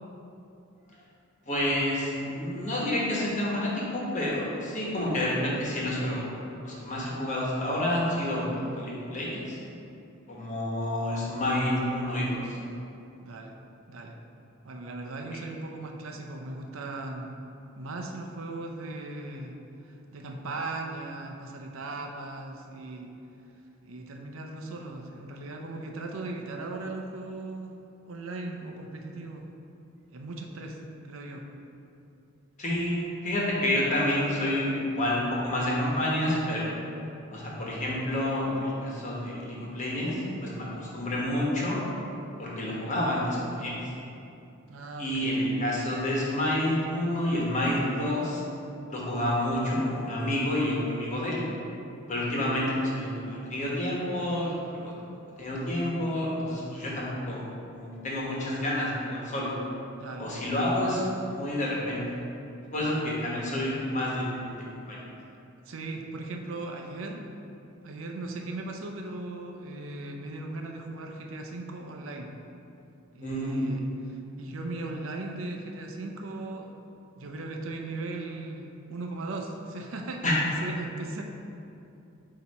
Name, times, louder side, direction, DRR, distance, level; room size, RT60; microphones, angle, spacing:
voice 1, 1.4-6.2 6.6-9.6 10.3-12.4 32.6-36.7 37.3-41.8 42.4-43.7 45.0-48.4 48.9-51.4 52.1-54.9 55.4-57.4 57.7-59.5 60.2-61.0 61.3-62.2 62.7-65.0 73.2-73.7 80.2-80.4, left 1 dB, 35° left, -5 dB, 1.2 m, -29 dB
voice 2, 13.2-13.6 13.9-14.2 14.6-17.3 17.8-19.6 19.8-23.1 23.8-27.8 28.0-29.5 30.1-31.5 44.7-45.4 60.0-60.7 62.8-63.0 65.7-67.3 67.8-72.3 73.1-76.7 77.2-81.2, right 2 dB, 70° right, 2 dB, 0.5 m, -38 dB
8.0 x 2.9 x 4.2 m, 2.7 s
head